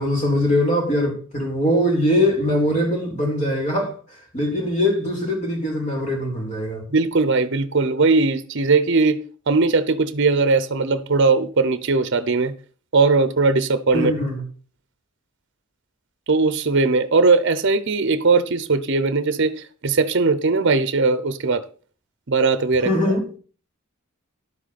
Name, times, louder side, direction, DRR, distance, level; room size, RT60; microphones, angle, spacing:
voice 1, 0.0-3.9 4.3-6.8 13.9-14.4 22.8-23.2, left 1 dB, 35° left, 3.6 m, -21 dB
voice 2, 6.9-12.5 12.9-14.1 16.3-21.6 22.3-23.1, right 3 dB, 55° right, 0.8 m, -19 dB
11.0 x 7.8 x 4.2 m
head